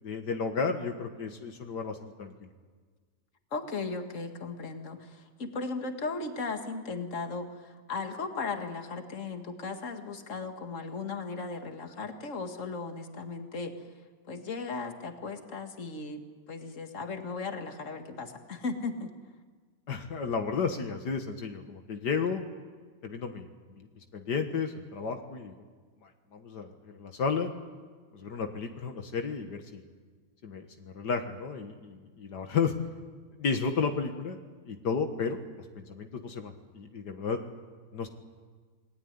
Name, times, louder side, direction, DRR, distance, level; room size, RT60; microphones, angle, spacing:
voice 1, 0.0-2.5 19.9-22.4 23.0-25.5 26.0-27.5 28.1-29.8 30.4-32.7 33.4-34.4 34.7-37.4 37.9-38.1, left 5 dB, 80° left, 5 dB, 2.1 m, -33 dB
voice 2, 3.5-13.9 14.3-19.1, left 4 dB, 45° left, 5 dB, 2.2 m, -37 dB
28.0 x 20.0 x 9.6 m, 1.5 s
omnidirectional pair, 1.8 m